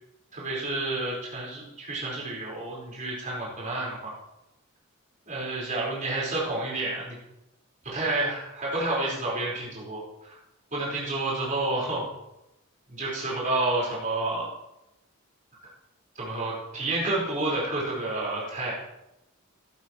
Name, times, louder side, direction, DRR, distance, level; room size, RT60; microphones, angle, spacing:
voice 1, 0.3-4.2 5.3-7.2 7.9-10.4 10.7-12.0 12.9-14.5 16.1-18.8, right 2 dB, 35° right, -6 dB, 4.9 m, -30 dB
15.0 x 11.0 x 3.2 m, 0.90 s
head